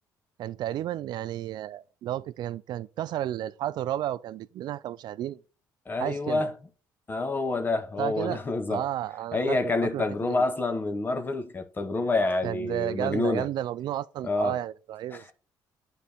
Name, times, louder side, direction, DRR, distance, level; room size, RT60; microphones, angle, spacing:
voice 1, 0.4-5.4 6.0-6.5 8.0-8.4 8.7-10.4 12.4-15.3, right 12 dB, 65° right, 0.4 m, -32 dB
voice 2, 5.9-6.5 7.1-8.9 9.3-13.5 14.2-14.6 15.1-15.3, left 3 dB, 25° left, 1.0 m, -28 dB
9.1 x 4.1 x 3.5 m
cardioid pair, 100°, 8 cm